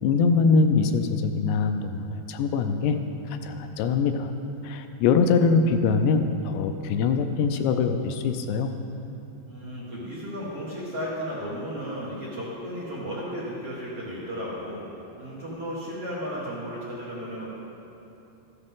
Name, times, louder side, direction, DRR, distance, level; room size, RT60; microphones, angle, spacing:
voice 1, 0.0-3.0 3.3-4.3 4.6-8.8, left 4 dB, 85° left, 7 dB, 2.7 m, -23 dB
voice 2, 9.5-14.9 15.2-17.5, equal, 50° right, -8 dB, 1.9 m, -34 dB
14.0 x 12.0 x 3.7 m, 2.8 s
omnidirectional pair, 4.9 m